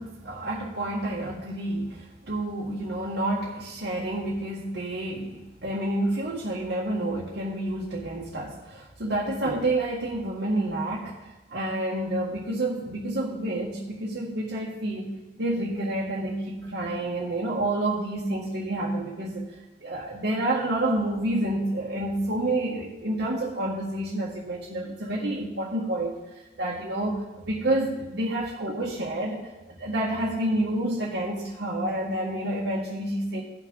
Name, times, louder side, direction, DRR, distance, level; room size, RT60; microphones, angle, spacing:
voice 1, 0.0-11.2 11.5-19.5 19.8-26.2 26.6-29.5 29.8-33.4, right 1 dB, 65° right, -5 dB, 1.8 m, -29 dB
18.0 x 6.2 x 3.9 m, 1.1 s
head